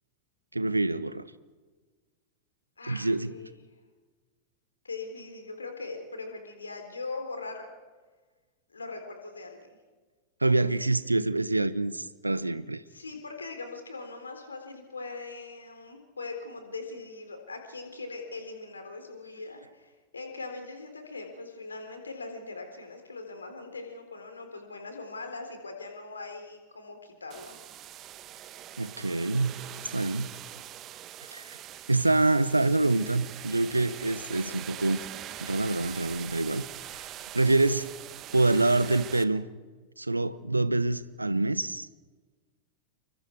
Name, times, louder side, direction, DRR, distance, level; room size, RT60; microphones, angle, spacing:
voice 1, 0.5-1.3 2.9-3.3 10.4-12.8 28.8-29.6 29.9-30.3 31.3-31.5 31.9-35.0 35.4-36.7 37.3-37.9 38.3-39.5 40.0-41.9, right 2 dB, 85° right, 0.9 m, -26 dB
voice 2, 2.8-3.7 4.8-7.7 8.7-9.8 12.9-27.6, left 3 dB, 75° left, 4.0 m, -41 dB
sound 1, 27.3-39.2, right 12 dB, 35° right, 1.3 m, -43 dB
29.0 x 24.0 x 4.7 m
figure-of-eight pair, 90°, 0 cm